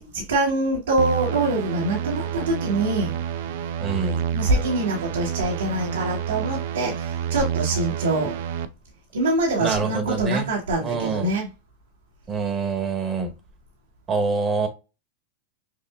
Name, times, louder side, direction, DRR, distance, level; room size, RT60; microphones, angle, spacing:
voice 1, 0.0-3.1 4.3-8.3 9.1-11.5, right 2 dB, 80° right, 1.4 m, -24 dB
sound 1, 1.0-8.7, right 8 dB, 60° right, 0.5 m, -29 dB
voice 2, 3.8-4.3 9.6-10.5 10.8-11.3 12.3-13.3 14.1-14.7, right 4 dB, 25° right, 1.4 m, -25 dB
6.1 x 2.4 x 2.4 m
hypercardioid pair, 95°, 0 cm